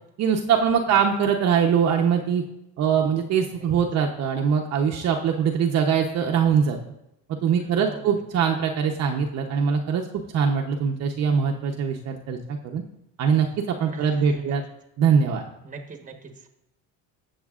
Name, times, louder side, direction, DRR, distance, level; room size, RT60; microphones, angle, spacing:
voice 1, 0.2-2.4 2.8-6.8 7.4-10.1 10.3-12.8 13.2-13.5 13.8-14.6 15.0-15.4, right 7 dB, 45° right, 1 dB, 0.9 m, -22 dB
voice 2, 2.8-3.7 7.6-8.1 13.9-14.6 15.6-16.5, right 3 dB, 20° right, 4 dB, 1.3 m, -43 dB
15.5 x 7.3 x 2.5 m, 0.85 s
cardioid pair, 135°, 35 cm